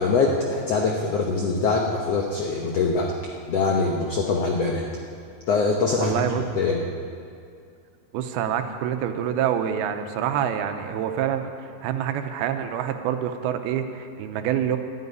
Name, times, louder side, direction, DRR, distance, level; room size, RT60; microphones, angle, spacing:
voice 1, 0.0-3.1 3.5-4.9 5.5-6.1 6.5-6.8, left 4 dB, 90° left, 0 dB, 1.3 m, -23 dB
voice 2, 6.0-6.4 8.1-14.8, right 9 dB, 90° right, 7 dB, 2.7 m, -26 dB
12.5 x 9.6 x 9.6 m, 2.4 s
omnidirectional pair, 4.4 m